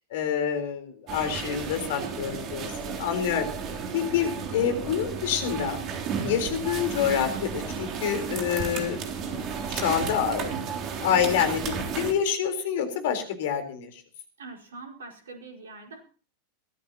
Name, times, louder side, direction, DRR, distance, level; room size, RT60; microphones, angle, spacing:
voice 1, 0.1-3.5 3.9-5.8 6.2-10.5 11.0-14.0, left 8 dB, 55° left, 7 dB, 4.0 m, -27 dB
sound 1, 1.1-12.1, right 6 dB, 35° right, 3.1 m, -33 dB
voice 2, 14.4-16.0, right 3 dB, 65° right, 3 dB, 4.8 m, -43 dB
22.0 x 15.5 x 2.9 m, 0.39 s
figure-of-eight pair, 90°, 0 cm